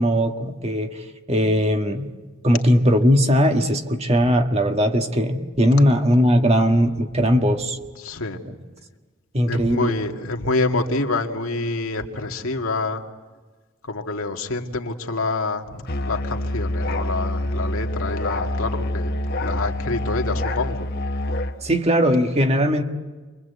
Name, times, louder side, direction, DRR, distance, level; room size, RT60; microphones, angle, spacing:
voice 1, 0.0-2.1 2.4-7.8 9.3-9.9 21.6-22.8, equal, 30° right, 5 dB, 1.5 m, -19 dB
voice 2, 8.0-8.4 9.5-13.0 13.9-19.1 19.4-20.9, left 3 dB, 90° left, 3 dB, 2.1 m, -26 dB
Musical instrument, 15.9-21.6, left 1 dB, 50° left, 1.4 m, -26 dB
28.5 x 24.0 x 8.2 m, 1.4 s
head